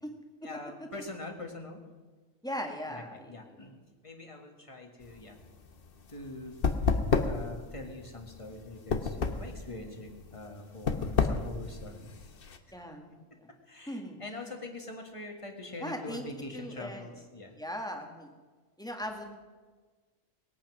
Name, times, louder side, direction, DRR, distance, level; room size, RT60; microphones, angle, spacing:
voice 1, 0.4-1.8 2.9-3.8 4.0-5.4 6.1-6.6 7.2-12.1 13.7-17.6, left 2 dB, 25° left, 3 dB, 1.8 m, -44 dB
voice 2, 2.4-3.6 12.7-13.1 13.4-13.5 13.9-14.4 15.8-16.3 16.5-17.1 17.5-18.3 18.8-19.3, equal, 5° left, 2 dB, 1.6 m, -39 dB
sound 1, 5.0-12.6, left 5 dB, 50° left, 1.1 m, -31 dB
20.5 x 8.7 x 6.2 m, 1.4 s
omnidirectional pair, 1.3 m